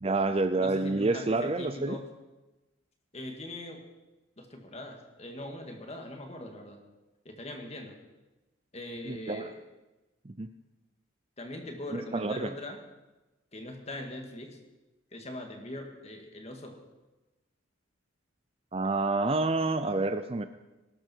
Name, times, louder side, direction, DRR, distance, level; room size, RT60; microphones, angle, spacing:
voice 1, 0.0-2.0 9.0-9.5 10.2-10.5 11.9-12.5 18.7-20.5, right 3 dB, 30° right, 10 dB, 0.6 m, -28 dB
voice 2, 0.6-2.1 3.1-3.8 4.4-6.8 7.3-8.0 8.7-9.6 11.4-12.8 13.5-14.6 15.1-16.8 18.8-18.9, left 1 dB, 30° left, 3 dB, 2.2 m, -41 dB
20.0 x 12.5 x 4.6 m, 1.1 s
head